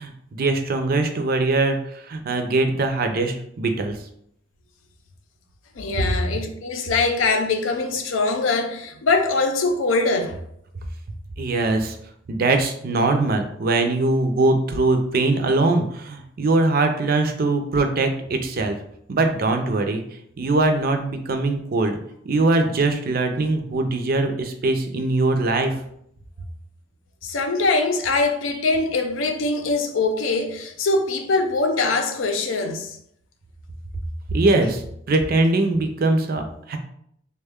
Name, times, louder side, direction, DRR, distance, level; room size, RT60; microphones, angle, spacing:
voice 1, 0.0-4.0 6.0-6.1 11.4-12.0 12.3-18.7 19.1-20.0 20.4-21.9 22.2-25.7 34.3-34.8 35.1-36.8, right 2 dB, 50° right, 0.5 m, -21 dB
voice 2, 5.8-10.4 27.2-33.0, left 3 dB, 90° left, 0.5 m, -22 dB
3.4 x 2.2 x 3.5 m
head